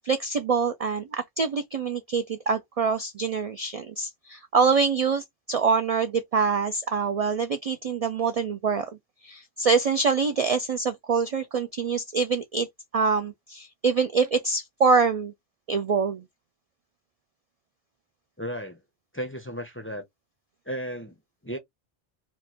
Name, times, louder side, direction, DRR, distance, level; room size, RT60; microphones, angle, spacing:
voice 1, 0.0-8.9 9.2-12.7 12.9-15.3 15.7-16.2, right 5 dB, 65° right, 0.3 m, -25 dB
voice 2, 18.4-18.8 19.1-20.1 20.7-21.6, equal, 15° left, 0.4 m, -34 dB
3.1 x 2.1 x 4.0 m
omnidirectional pair, 1.1 m